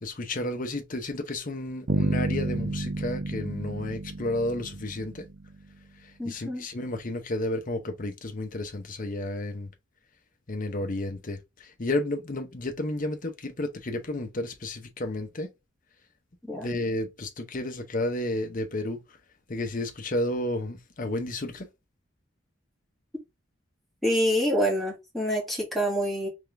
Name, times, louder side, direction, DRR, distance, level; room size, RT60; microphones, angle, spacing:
voice 1, 0.0-5.2 6.2-9.7 10.5-15.5 16.6-19.0 19.5-21.7, left 1 dB, 45° left, 0.8 m, -32 dB
Bass guitar, 1.9-5.7, right 2 dB, 50° right, 0.5 m, -30 dB
voice 2, 6.2-6.7 16.4-16.7 24.0-26.3, equal, ahead, 2.0 m, -26 dB
3.7 x 3.5 x 3.4 m
head